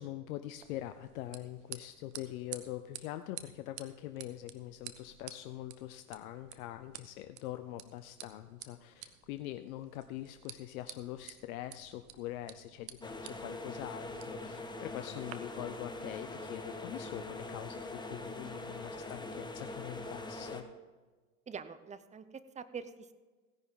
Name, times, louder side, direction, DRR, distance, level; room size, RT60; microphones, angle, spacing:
voice 1, 0.0-20.6, left 14 dB, 65° left, 10 dB, 0.7 m, -43 dB
sound 1, 0.5-15.3, right 13 dB, 50° right, 1.3 m, -52 dB
sound 2, 13.0-20.6, left 2 dB, 10° left, 1.3 m, -43 dB
voice 2, 21.5-23.1, right 6 dB, 15° right, 12 dB, 0.8 m, -45 dB
16.5 x 10.5 x 3.8 m, 1.3 s
hypercardioid pair, 90°, 45 cm